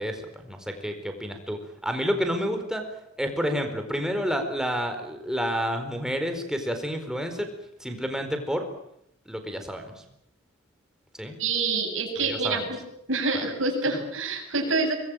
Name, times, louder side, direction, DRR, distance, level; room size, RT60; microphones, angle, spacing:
voice 1, 0.0-2.8 3.2-7.5 7.8-8.7 9.3-9.9 11.1-11.4 12.3-12.7, equal, 5° right, 6 dB, 4.5 m, -29 dB
voice 2, 11.4-12.8 13.1-14.9, right 3 dB, 70° right, 1 dB, 7.9 m, -26 dB
25.0 x 21.5 x 9.1 m, 0.77 s
head